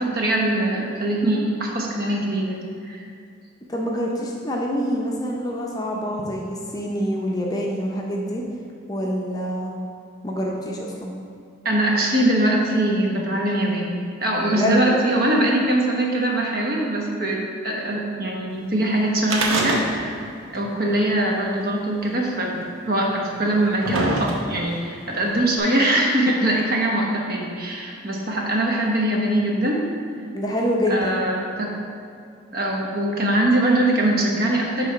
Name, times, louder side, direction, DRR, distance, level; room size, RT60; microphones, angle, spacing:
voice 1, 0.0-3.0 11.6-20.3 20.5-22.6 22.9-29.9 30.9-31.7 32.5-34.9, right 1 dB, 45° right, -1 dB, 1.0 m, -22 dB
voice 2, 3.7-8.4 8.9-9.7 10.2-11.1 14.5-15.0 30.3-31.2, equal, 20° left, -2 dB, 0.6 m, -26 dB
sound 1, 19.2-20.3 20.5-20.6 21.6-21.7 22.6-22.7 23.4-24.7 25.6-25.7, right 2 dB, 85° right, 0.9 m, -24 dB
8.2 x 3.3 x 5.0 m, 2.5 s
head